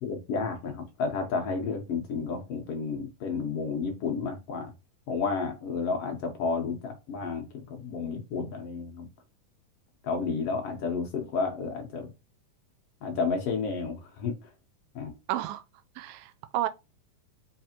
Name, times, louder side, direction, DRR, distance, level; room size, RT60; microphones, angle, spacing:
voice 1, 0.0-4.7 5.1-9.1 10.0-12.1 13.0-14.5 14.9-15.2, left 5 dB, 70° left, 1.5 m, -31 dB
voice 2, 15.3-15.6 16.0-16.7, right 14 dB, 85° right, 2.2 m, -31 dB
5.7 x 3.2 x 2.8 m
omnidirectional pair, 3.8 m